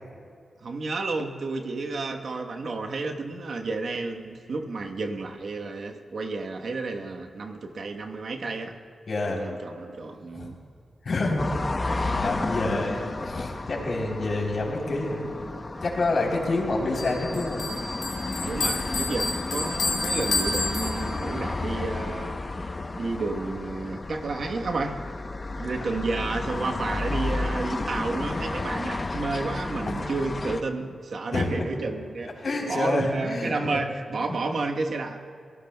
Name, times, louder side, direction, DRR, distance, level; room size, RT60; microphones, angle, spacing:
voice 1, 0.6-8.7 9.2-10.6 18.4-25.0 25.6-32.3 32.7-35.2, right 3 dB, 70° right, 3 dB, 1.1 m, -31 dB
voice 2, 9.1-9.4 10.3-10.5 11.0-11.5 11.9-15.2 15.6-17.7 25.5-25.7 29.9-30.0 31.3-31.5 32.4-33.8 34.3-34.4, left 2 dB, 65° left, -1 dB, 3.5 m, -28 dB
sound 1, 11.4-30.6, left 2 dB, 35° left, 0.8 m, -32 dB
Bell, 17.0-21.5, left 3 dB, 90° left, 1.9 m, -30 dB
30.0 x 18.0 x 2.2 m, 2.2 s
cardioid pair, 60°, 0 cm